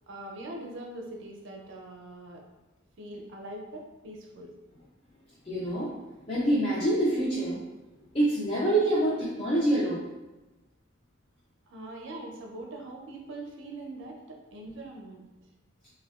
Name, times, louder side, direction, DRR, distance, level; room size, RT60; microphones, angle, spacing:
voice 1, 0.1-2.4 3.0-4.6 11.7-15.3, right 1 dB, 65° right, 0 dB, 0.5 m, -42 dB
voice 2, 5.5-5.9 6.3-7.6 8.1-10.0, right 1 dB, 30° left, -8 dB, 0.5 m, -26 dB
3.5 x 2.2 x 2.3 m, 1.1 s
head